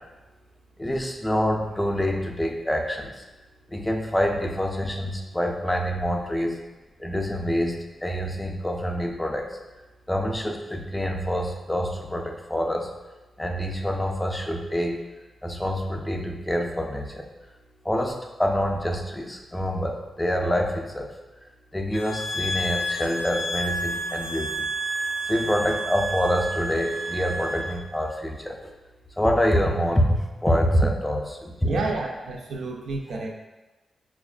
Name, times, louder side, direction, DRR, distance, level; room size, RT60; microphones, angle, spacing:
voice 1, 0.8-3.1 3.7-6.6 7.0-7.7 8.0-9.5 10.1-12.9 13.4-15.0 15.4-17.3 17.8-21.1 21.7-24.7 25.3-28.6 29.2-31.9, equal, 10° left, 2 dB, 0.4 m, -26 dB
sound 1, 21.9-27.8, right 1 dB, 80° left, 0.4 m, -30 dB
voice 2, 31.7-33.3, right 3 dB, 85° right, 1 dB, 0.5 m, -30 dB
5.6 x 2.3 x 2.3 m, 1.1 s
wide cardioid pair, 120°, 0 cm